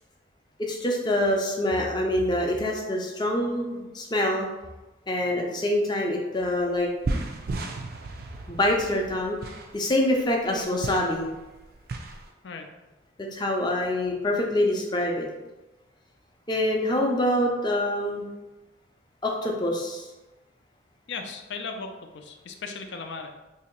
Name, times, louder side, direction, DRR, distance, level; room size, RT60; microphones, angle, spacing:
voice 1, 0.6-4.5 5.1-6.9 8.5-9.4 9.7-11.3 13.2-15.3 16.5-18.2 19.2-20.1, left 1 dB, 25° left, 0 dB, 0.5 m, -25 dB
sound 1, 6.4-6.5 6.7-12.3, right 2 dB, 50° right, 0.4 m, -35 dB
voice 2, 21.1-23.3, left 4 dB, 75° left, 4 dB, 0.5 m, -37 dB
2.9 x 2.7 x 4.4 m, 1.1 s
head